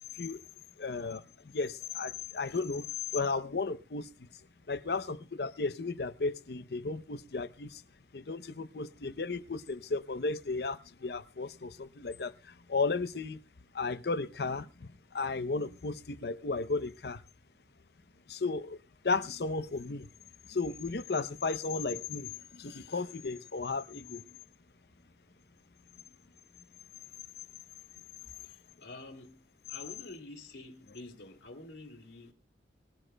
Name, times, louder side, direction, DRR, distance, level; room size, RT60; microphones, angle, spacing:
voice 1, 0.8-2.9 3.1-4.3 4.7-7.8 8.1-13.4 13.7-17.2 18.3-18.8 19.0-20.1 20.4-24.2, left 3 dB, 60° left, 0.7 m, -34 dB
voice 2, 28.4-32.3, left 2 dB, 80° left, 2.7 m, -48 dB
24.5 x 15.0 x 2.2 m
head